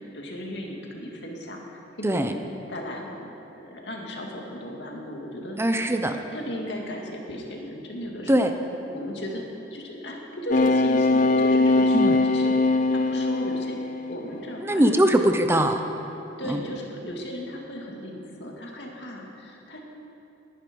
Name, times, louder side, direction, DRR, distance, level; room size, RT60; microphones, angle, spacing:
voice 1, 0.1-2.2 2.7-3.3 3.5-5.6 6.3-8.5 8.9-13.8 14.1-15.5 16.4-19.8, equal, 70° left, 0 dB, 2.3 m, -36 dB
voice 2, 5.6-6.2 8.3-8.5 11.9-12.2 14.6-15.8 16.5-16.6, right 1 dB, 15° right, 6 dB, 0.7 m, -21 dB
sound 1, 10.5-14.3 14.8-15.1, left 2 dB, 50° left, 0.5 m, -21 dB
19.0 x 11.0 x 5.4 m, 2.9 s
head